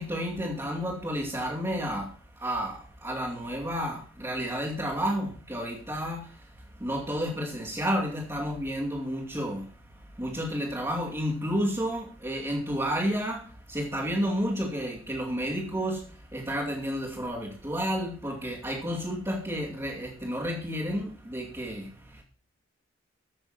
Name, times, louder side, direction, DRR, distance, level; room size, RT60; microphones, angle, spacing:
voice 1, 0.0-22.2, equal, 15° right, 2.6 m, -31 dB
15.0 x 6.7 x 5.8 m
head